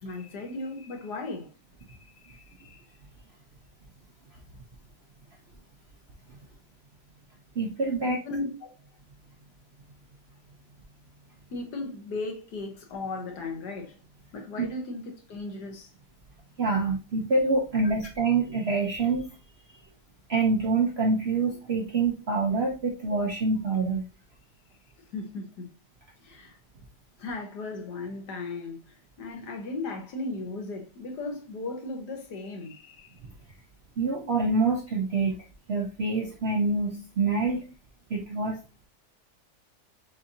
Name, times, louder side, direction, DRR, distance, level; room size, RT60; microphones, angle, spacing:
voice 1, 0.0-1.5 1.9-2.8 8.0-8.7 11.5-14.0 14.3-15.9 25.1-25.7 26.2-26.6 27.2-33.1, left 3 dB, 70° left, 1.6 m, -36 dB
voice 2, 7.6-8.2 14.6-14.7 16.6-19.4 20.3-24.1 34.0-35.4 35.7-37.7 38.1-38.6, right 3 dB, 60° right, 0.7 m, -26 dB
6.2 x 2.7 x 2.7 m
omnidirectional pair, 1.9 m